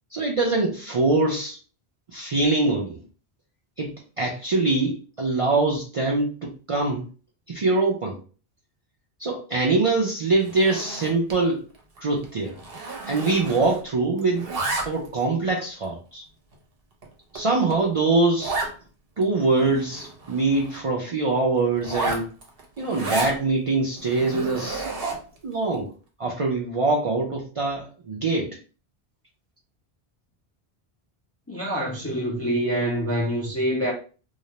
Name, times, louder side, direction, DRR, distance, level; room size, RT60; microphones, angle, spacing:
voice 1, 0.1-1.6 2.1-3.0 3.8-7.1 7.5-8.2 9.2-11.6 12.0-12.6 13.1-14.5 14.8-16.2 17.3-18.6 19.2-22.3 22.8-24.9 25.4-25.9 26.2-28.6, right 3 dB, 50° right, 0.4 m, -23 dB
Zipper (clothing), 10.4-11.4 11.7-12.0 12.2-13.9 14.2-15.2 15.8-15.9 16.5-16.6 17.0-17.1 17.3-17.4 17.7-17.8 18.4-18.7 19.2-19.3 19.5-20.8 21.8-23.4 24.0-25.4, right 3 dB, 70° right, 0.9 m, -32 dB
voice 2, 31.5-33.9, equal, 25° left, 0.3 m, -25 dB
2.3 x 2.0 x 2.7 m
omnidirectional pair, 1.1 m